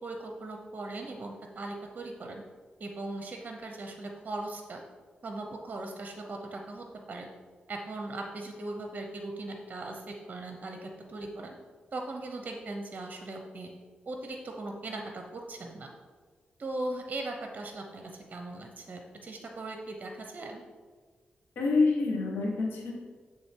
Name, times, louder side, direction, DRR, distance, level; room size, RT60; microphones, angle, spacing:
voice 1, 0.0-2.4 2.8-4.8 5.2-7.3 7.7-11.6 11.9-13.7 14.1-15.9 16.6-20.6, right 2 dB, 50° right, 3 dB, 0.8 m, -39 dB
voice 2, 21.6-22.9, left 3 dB, 90° left, 0 dB, 1.3 m, -26 dB
7.9 x 3.6 x 4.5 m, 1.5 s
cardioid pair, 65°, 3 cm